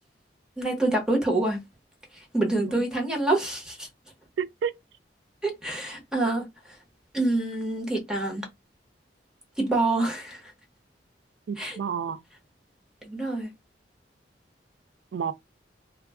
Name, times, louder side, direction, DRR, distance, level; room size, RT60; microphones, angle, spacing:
voice 1, 0.6-1.6 2.1-3.9 5.4-6.5 7.1-8.5 9.6-10.4 11.6-11.8 13.0-13.5, right 2 dB, 5° right, 0.9 m, -26 dB
voice 2, 4.4-4.7 11.5-12.2 15.1-15.3, right 7 dB, 85° right, 0.4 m, -30 dB
2.2 x 2.2 x 3.4 m
head